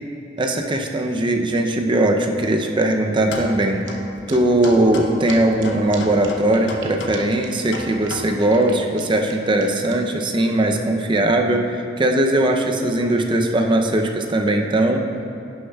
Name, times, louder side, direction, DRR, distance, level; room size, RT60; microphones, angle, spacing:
voice 1, 0.4-3.8 4.3-15.0, right 1 dB, 25° right, 3 dB, 0.5 m, -19 dB
sound 1, 3.2-8.2, left 2 dB, 85° left, 0.7 m, -34 dB
sound 2, 3.8-3.9 4.3-4.4 4.6-4.7 4.9-5.0 5.3-5.4 5.6-5.7 5.9-6.0 6.2-6.9 7.1-7.2 7.4-7.5 7.7-9.9, right 8 dB, 85° right, 0.8 m, -40 dB
11.0 x 6.5 x 2.3 m, 2.8 s
head